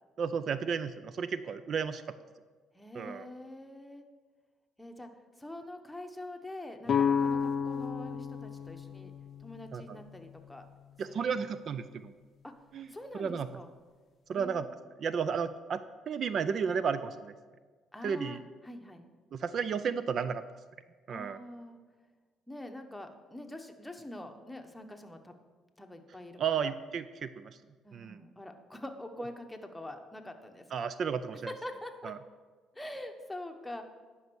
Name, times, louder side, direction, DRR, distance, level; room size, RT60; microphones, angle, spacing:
voice 1, 0.2-2.0 2.9-3.3 9.7-10.0 11.0-12.1 12.7-12.9 13.1-13.5 14.3-14.7 15.0-17.3 18.0-18.4 19.3-20.4 21.1-21.4 26.4-27.6 27.9-28.2 30.7-31.5 32.0-32.2, right 6 dB, 55° right, 13 dB, 0.4 m, -33 dB
voice 2, 2.7-4.0 4.8-5.1 5.4-9.1 9.4-10.6 11.1-11.2 12.4-12.5 12.9-13.7 14.3-14.6 17.9-19.1 21.1-21.8 22.5-25.3 25.8-26.7 27.8-30.9 31.5-32.1 32.7-33.8, left 1 dB, 5° left, 4 dB, 1.1 m, -44 dB
sound 1, 6.9-10.7, left 6 dB, 50° left, 0.5 m, -32 dB
10.5 x 5.5 x 6.3 m, 1.4 s
supercardioid pair, 80°, 0 cm